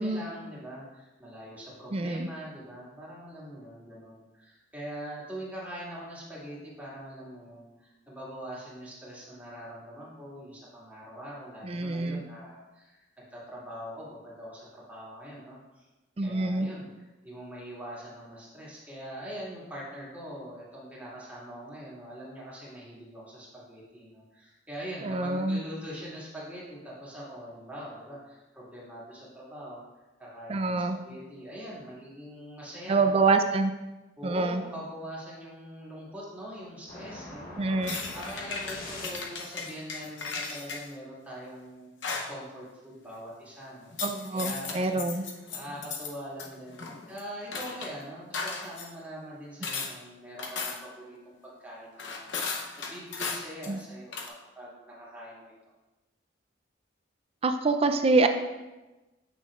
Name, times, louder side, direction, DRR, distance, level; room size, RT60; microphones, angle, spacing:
voice 1, 0.0-13.1 13.3-15.9 16.2-29.8 30.2-33.3 34.2-43.9 44.3-55.5, equal, 10° right, -7 dB, 2.0 m, -43 dB
voice 2, 1.9-2.3 11.6-12.2 16.2-16.7 25.0-25.6 30.5-31.0 32.9-33.7 34.2-34.6 37.6-38.0 44.0-45.2 53.7-53.8 57.4-58.3, right 3 dB, 30° right, 8 dB, 0.4 m, -26 dB
sound 1, 36.9-39.5, left 2 dB, 50° left, 1.0 m, -43 dB
sound 2, 37.8-40.9 42.0-42.4 43.9-46.1 46.4-47.9 48.3-48.9 49.6-49.9 50.4-51.0 52.0-53.8 54.1-54.3, left 5 dB, 75° left, 0.8 m, -36 dB
8.1 x 6.0 x 2.4 m, 1.1 s
head